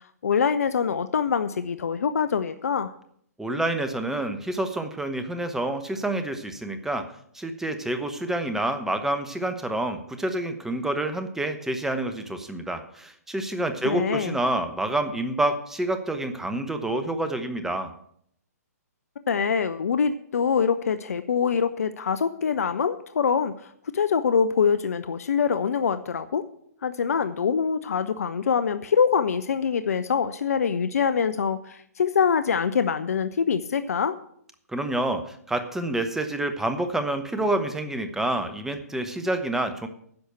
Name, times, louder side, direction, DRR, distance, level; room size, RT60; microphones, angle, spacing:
voice 1, 0.2-2.9 13.8-14.4 19.3-26.4 26.8-34.2, left 6 dB, 65° left, 12 dB, 0.6 m, -24 dB
voice 2, 3.4-7.1 7.3-17.9 34.7-39.9, right 1 dB, 5° right, 8 dB, 0.9 m, -28 dB
10.5 x 6.3 x 7.9 m, 0.66 s
figure-of-eight pair, 125°, 9 cm